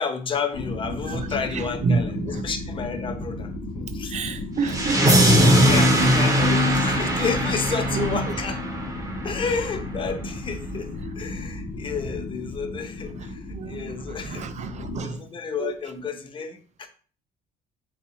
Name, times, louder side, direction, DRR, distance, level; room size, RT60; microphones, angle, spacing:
voice 1, 0.0-4.2 4.8-5.2 5.7-8.6 9.2-10.9 11.2-14.5 15.0-16.9, left 5 dB, 30° left, 0.7 m, -31 dB
sound 1, 0.5-15.0, left 2 dB, 70° left, 0.8 m, -34 dB
voice 2, 1.0-2.4 4.1-5.4 7.9-8.3 13.5-15.3 15.6-15.7, right 4 dB, 45° right, 0.5 m, -29 dB
sound 2, 4.7-9.6, equal, 20° right, 1.0 m, -20 dB
4.1 x 3.6 x 2.8 m
cardioid pair, 110°, 17 cm